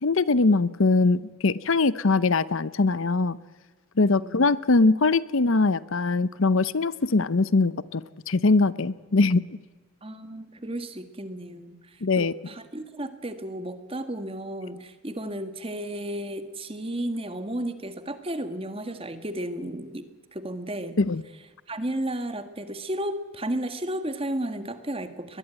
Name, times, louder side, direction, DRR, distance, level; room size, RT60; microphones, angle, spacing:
voice 1, 0.0-3.4 4.0-9.4 12.0-12.3 21.0-21.2, left 3 dB, 60° left, 18 dB, 0.7 m, -22 dB
voice 2, 4.0-4.5 10.0-20.1 20.3-21.0 21.7-25.4, right 1 dB, 25° right, 9 dB, 1.7 m, -33 dB
22.0 x 21.0 x 9.2 m, 1.3 s
head